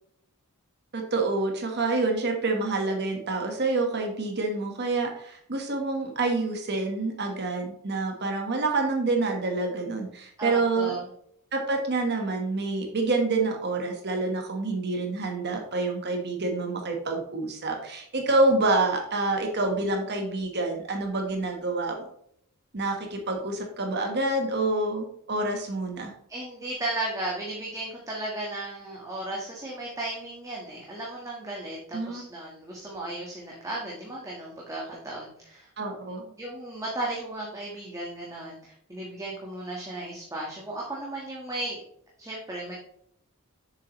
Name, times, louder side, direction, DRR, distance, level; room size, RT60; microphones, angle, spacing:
voice 1, 0.9-10.9 11.5-22.0 22.7-26.1 31.9-32.2 35.8-36.2, right 3 dB, 50° right, 3 dB, 1.3 m, -27 dB
voice 2, 10.4-11.0 26.3-35.7 36.4-41.8 42.2-42.7, right 2 dB, 15° right, -3 dB, 1.4 m, -35 dB
7.4 x 6.7 x 3.1 m, 0.69 s
head